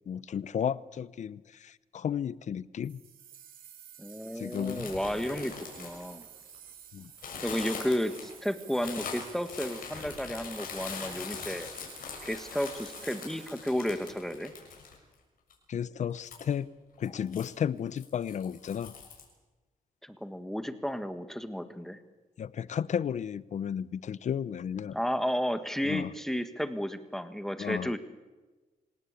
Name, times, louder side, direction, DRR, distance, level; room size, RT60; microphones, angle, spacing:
voice 1, 0.1-3.0 4.3-4.9 6.9-7.1 15.7-16.7 17.0-18.9 22.4-25.0 25.8-26.1 27.6-27.9, left 8 dB, 55° left, 0.8 m, -33 dB
sound 1, 2.8-14.9, right 9 dB, 80° right, 2.2 m, -52 dB
voice 2, 4.0-6.2 7.4-11.7 12.2-14.5 20.0-22.0 24.9-28.0, equal, 5° left, 1.6 m, -33 dB
sound 2, 4.5-6.7 7.2-15.1 15.5-15.6 16.2-16.5 17.0-17.5 18.0-19.2, left 6 dB, 80° left, 6.6 m, -42 dB
27.0 x 18.0 x 8.4 m
cardioid pair, 120°, 15 cm